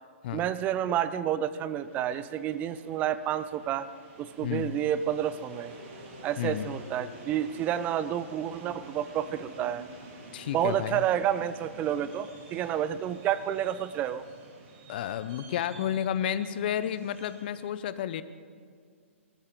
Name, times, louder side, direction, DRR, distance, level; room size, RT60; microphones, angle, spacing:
voice 1, 0.3-3.9 4.2-5.7 6.2-9.8 10.5-14.2, right 10 dB, 20° right, 15 dB, 0.5 m, -29 dB
sound 1, 1.7-17.6, right 2 dB, 35° right, 2.6 m, -49 dB
voice 2, 4.4-4.8 6.4-6.7 10.3-11.0 14.9-18.2, left 10 dB, 45° left, 14 dB, 0.7 m, -31 dB
20.5 x 13.5 x 3.8 m, 2.1 s
figure-of-eight pair, 120°, 7 cm